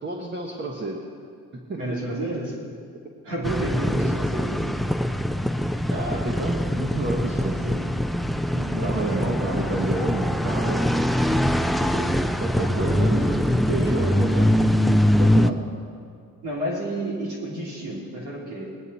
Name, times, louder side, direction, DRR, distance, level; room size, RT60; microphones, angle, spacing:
voice 1, 0.0-1.0 1.7-2.0 5.9-7.9 8.8-10.9 11.6-15.6, right 2 dB, 35° right, -1 dB, 1.4 m, -30 dB
voice 2, 1.8-2.6 3.2-4.6 8.5-9.7 16.4-18.7, right 1 dB, 85° right, -3 dB, 3.5 m, -31 dB
sound 1, 3.4-15.5, equal, ahead, 0.4 m, -23 dB
19.0 x 10.0 x 4.2 m, 2.2 s
cardioid pair, 90°, 30 cm